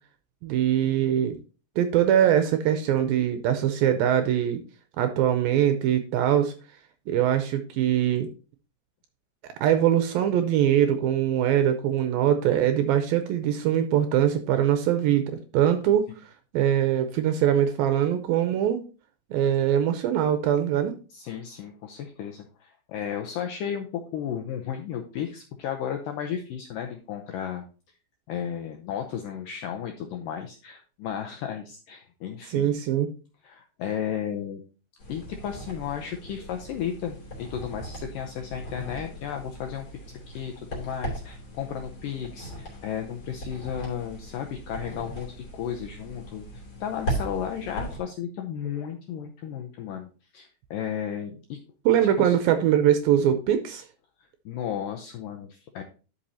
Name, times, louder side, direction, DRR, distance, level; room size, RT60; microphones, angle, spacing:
voice 1, 0.4-1.4 1.8-4.6 5.0-6.5 7.1-8.3 9.6-16.1 16.5-18.8 19.3-20.9 32.5-33.1 51.9-53.8, right 10 dB, 80° right, 8 dB, 2.2 m, -22 dB
voice 2, 21.1-27.6 28.3-32.8 33.4-34.6 35.1-39.9 40.3-50.1 50.3-51.6 52.2-52.4 54.2-55.8, left 9 dB, 90° left, 4 dB, 1.9 m, -34 dB
sound 1, 35.0-48.0, right 1 dB, 40° left, 3.6 m, -38 dB
11.5 x 5.4 x 2.8 m, 0.36 s
omnidirectional pair, 4.7 m